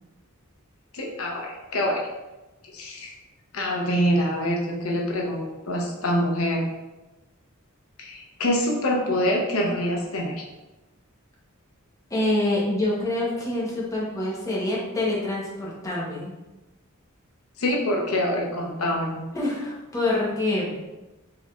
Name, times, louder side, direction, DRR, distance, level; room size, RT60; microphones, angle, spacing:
voice 1, 0.9-2.0 2.6-3.1 3.5-6.7 8.0-10.4 17.6-19.2, equal, 80° left, 0 dB, 0.7 m, -25 dB
voice 2, 12.1-16.3 19.3-20.7, left 1 dB, 15° left, -5 dB, 0.9 m, -26 dB
4.4 x 3.4 x 2.4 m, 1.1 s
head